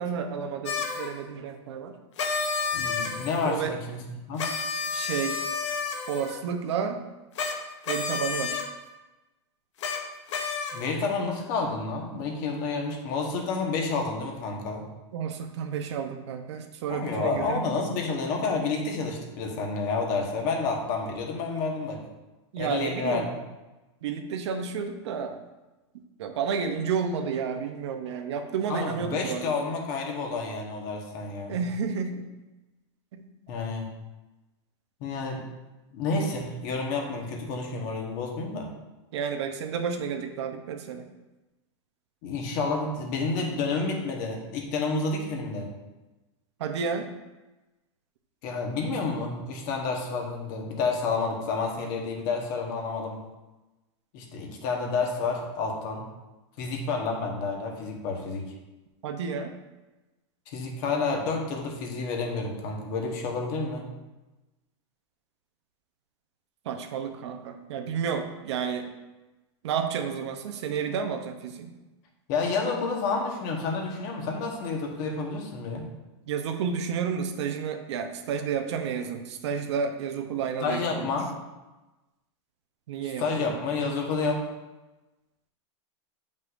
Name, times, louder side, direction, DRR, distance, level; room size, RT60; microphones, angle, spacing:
voice 1, 0.0-2.0 3.4-3.8 4.9-5.5 6.1-7.0 7.9-8.6 15.1-17.6 22.5-23.3 24.0-25.4 26.2-29.6 31.5-32.3 33.1-33.2 39.1-41.1 46.6-47.1 59.0-59.5 66.6-68.9 69.6-71.7 76.3-81.1 82.9-83.6, right 6 dB, 75° right, 6 dB, 0.8 m, -31 dB
sound 1, 0.7-1.1 2.2-3.6 4.4-6.4 7.4-7.6 7.8-8.7 9.8-10.0 10.3-10.9, left 5 dB, 90° left, 0.9 m, -30 dB
voice 2, 2.7-4.5 10.7-14.8 16.9-22.0 22.6-23.4 28.7-31.6 33.5-33.9 35.0-35.4 35.9-38.7 42.2-45.7 48.4-53.2 54.1-56.1 56.6-58.5 60.5-63.9 72.3-75.9 80.6-81.3 83.2-84.4, left 4 dB, 45° left, 1 dB, 1.2 m, -30 dB
7.9 x 5.4 x 2.5 m, 1.1 s
supercardioid pair, 165°, 15 cm